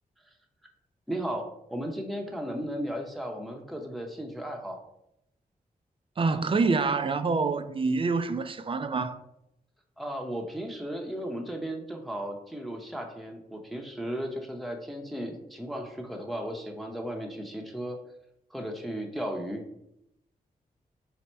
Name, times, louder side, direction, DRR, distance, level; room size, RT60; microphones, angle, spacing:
voice 1, 1.1-4.8 10.0-18.0 18.5-19.6, equal, ahead, 0.7 m, -35 dB
voice 2, 6.2-9.2, right 4 dB, 35° right, 0.4 m, -26 dB
4.1 x 2.1 x 4.3 m
cardioid pair, 65°, 15 cm